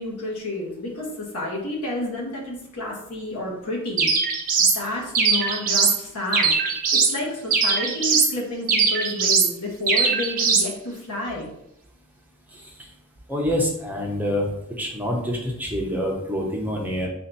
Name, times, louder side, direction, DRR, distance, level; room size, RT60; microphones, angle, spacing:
voice 1, 0.0-4.1 4.7-6.6 7.1-11.5, left 2 dB, 90° left, -3 dB, 1.6 m, -30 dB
sound 1, 4.0-4.8 5.1-6.0 6.3-7.2 7.5-8.3 8.7-9.5 9.9-10.7, right 5 dB, 40° right, 0.8 m, -20 dB
voice 2, 13.3-14.5 14.8-17.1, equal, 10° right, -2 dB, 0.8 m, -26 dB
4.2 x 2.8 x 4.1 m, 0.79 s
head